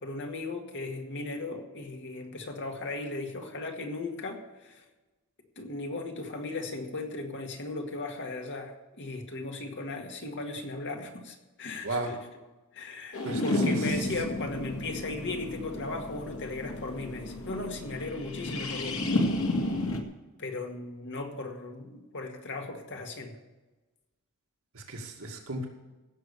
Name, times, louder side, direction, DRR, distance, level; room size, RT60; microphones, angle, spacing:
voice 1, 0.0-4.8 5.6-12.2 12.7-19.0 20.4-23.4, left 2 dB, 55° left, 3 dB, 2.0 m, -37 dB
sound 1, 13.1-20.0, left 1 dB, 80° left, 1.8 m, -32 dB
voice 2, 13.2-13.8 24.7-25.7, right 2 dB, 70° right, 1 dB, 2.2 m, -35 dB
16.5 x 7.0 x 6.8 m, 1.1 s
head